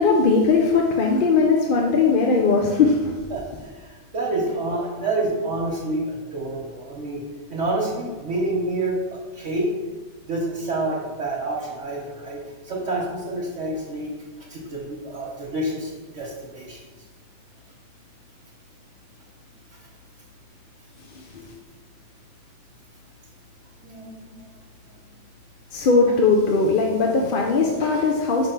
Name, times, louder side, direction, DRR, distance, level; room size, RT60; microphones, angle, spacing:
voice 1, 0.0-3.1 21.1-21.5 25.7-28.5, left 4 dB, 55° left, 0 dB, 0.7 m, -19 dB
voice 2, 3.3-7.2 7.5-9.7 10.3-14.1 14.5-16.8 23.8-24.4, right 2 dB, 75° right, -5 dB, 1.3 m, -28 dB
5.8 x 3.4 x 5.7 m, 1.3 s
omnidirectional pair, 1.2 m